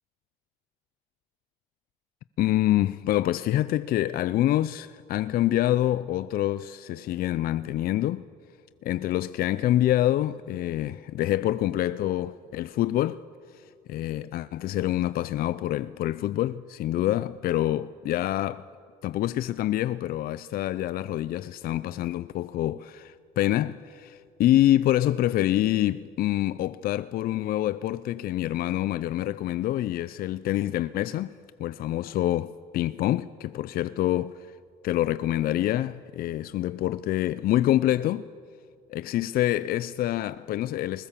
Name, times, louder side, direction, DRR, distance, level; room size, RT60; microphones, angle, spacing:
voice 1, 2.4-8.2 8.8-13.2 13.5-18.7 19.0-31.3 31.6-34.5 34.8-38.3 38.9-41.1, left 13 dB, 60° left, 0.5 m, -26 dB
20.5 x 20.5 x 7.4 m
cardioid pair, 110°, 17 cm